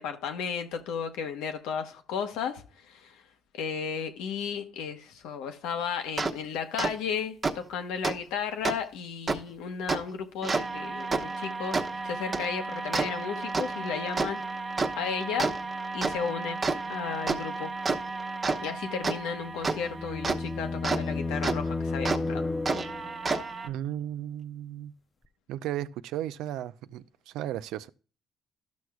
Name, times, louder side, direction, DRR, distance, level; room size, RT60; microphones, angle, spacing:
voice 1, 0.0-3.2 3.5-14.4 14.6-15.5 15.9-16.6 16.9-17.7 18.6-22.4, left 7 dB, 90° left, 1.0 m, -34 dB
sound 1, 6.2-6.3 6.8-6.9 7.4-7.5 8.0-8.2 8.7-8.8 9.3-9.4 9.9-10.0 10.4-21.0 21.4-21.6 22.1-22.2 22.7-23.7, right 3 dB, 35° right, 1.0 m, -31 dB
sound 2, 19.3-23.3, left 3 dB, 20° left, 0.5 m, -32 dB
voice 2, 23.6-24.9 25.5-27.9, right 12 dB, 85° right, 0.4 m, -35 dB
13.0 x 6.2 x 2.3 m
cardioid pair, 80°, 0 cm